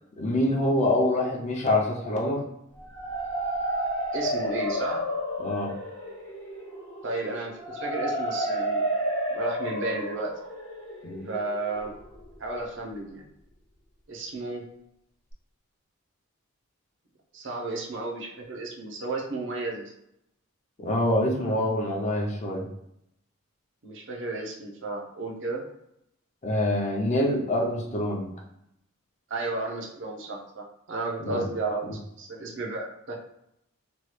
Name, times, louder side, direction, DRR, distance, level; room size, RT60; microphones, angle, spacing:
voice 1, 0.2-2.4 5.4-5.7 11.0-11.3 20.8-22.7 26.4-28.3 31.2-31.5, left 1 dB, 35° left, -1 dB, 0.5 m, -25 dB
sound 1, 2.8-12.6, equal, 65° left, 0.9 m, -31 dB
voice 2, 4.1-5.0 7.0-8.9 9.3-10.3 11.3-11.9 12.4-13.3 14.1-14.6 17.3-19.9 23.8-25.6 29.3-33.2, right 2 dB, 60° right, 0 dB, 0.6 m, -33 dB
3.0 x 2.2 x 3.1 m, 0.80 s
head